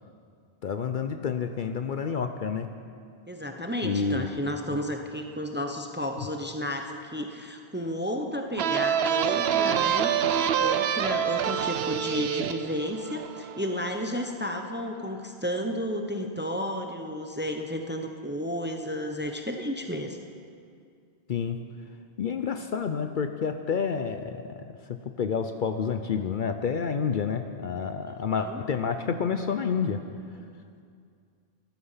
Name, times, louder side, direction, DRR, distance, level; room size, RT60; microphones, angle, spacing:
voice 1, 0.6-2.7 3.8-4.4 21.3-21.6 22.2-24.4 25.2-30.0, left 6 dB, 55° left, 7 dB, 0.7 m, -29 dB
voice 2, 3.3-20.2 28.1-28.6, equal, 10° right, 4 dB, 0.7 m, -32 dB
sound 1, 8.6-14.0, right 8 dB, 75° right, 0.8 m, -26 dB
14.5 x 12.0 x 5.6 m, 2.3 s
omnidirectional pair, 1.1 m